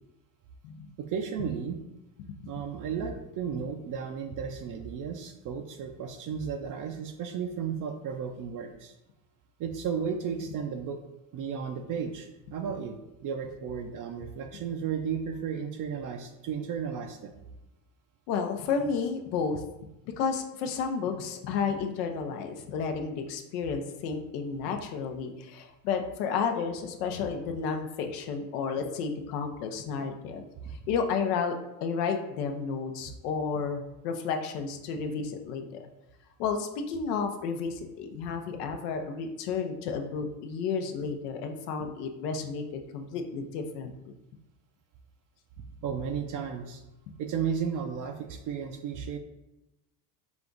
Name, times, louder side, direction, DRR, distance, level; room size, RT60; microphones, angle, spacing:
voice 1, 1.0-1.8 2.4-9.0 9.6-11.0 11.3-17.3 30.8-30.9 45.8-46.8 47.2-49.2, right 7 dB, 45° right, 4 dB, 0.5 m, -34 dB
voice 2, 18.3-19.6 20.2-30.4 30.9-35.9 36.4-44.1, left 5 dB, 85° left, 5 dB, 0.7 m, -32 dB
5.0 x 2.3 x 3.8 m, 0.95 s
supercardioid pair, 100°, 46 cm